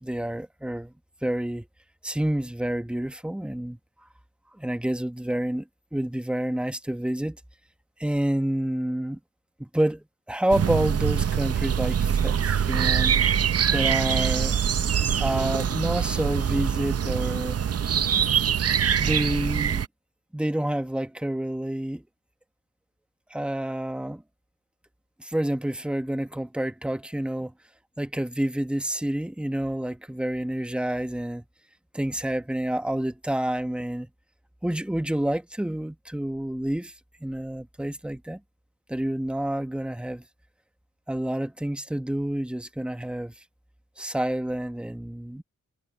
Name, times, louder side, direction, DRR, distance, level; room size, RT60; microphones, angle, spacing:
voice 1, 0.0-0.9 1.2-1.7 2.0-3.8 4.6-5.7 5.9-7.4 8.0-9.2 9.6-13.2 13.7-14.6 15.2-17.6 19.0-19.8 20.3-22.0 23.3-24.2 25.2-27.5 28.0-31.4 31.9-34.1 34.6-36.9 37.2-38.4 38.9-40.2 41.1-43.3 44.0-45.4, right 1 dB, 5° right, 1.2 m, -28 dB
sound 1, 10.5-19.9, right 8 dB, 50° right, 0.7 m, -24 dB
wide cardioid pair, 130°, 32 cm